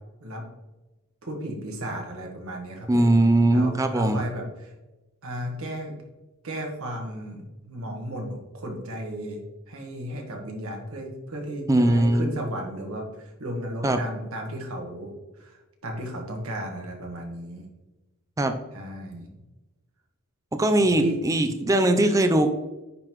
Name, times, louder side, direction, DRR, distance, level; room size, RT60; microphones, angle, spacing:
voice 1, 1.2-3.0 3.5-4.7 5.2-5.9 6.4-15.1 15.4-17.6 18.7-19.3 20.8-21.2, right 1 dB, 65° right, 1 dB, 1.3 m, -34 dB
voice 2, 2.9-4.2 11.7-12.3 13.8-14.0 18.4-18.6 20.5-22.5, right 1 dB, 15° right, 7 dB, 0.4 m, -20 dB
9.8 x 3.9 x 3.0 m, 1.1 s
head